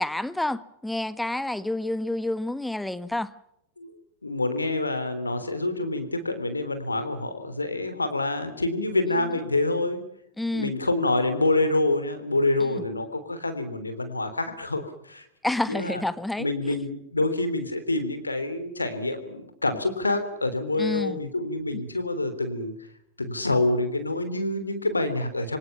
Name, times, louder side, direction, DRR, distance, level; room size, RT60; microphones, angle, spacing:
voice 1, 0.0-3.3 10.4-10.7 12.6-12.7 15.4-16.7 20.8-21.2, left 1 dB, 5° left, 1.3 m, -29 dB
voice 2, 4.2-10.0 10.5-15.2 15.7-16.0 16.4-22.7 23.2-25.6, left 2 dB, 80° left, 3.4 m, -27 dB
27.0 x 25.0 x 5.9 m
figure-of-eight pair, 90°, 0 cm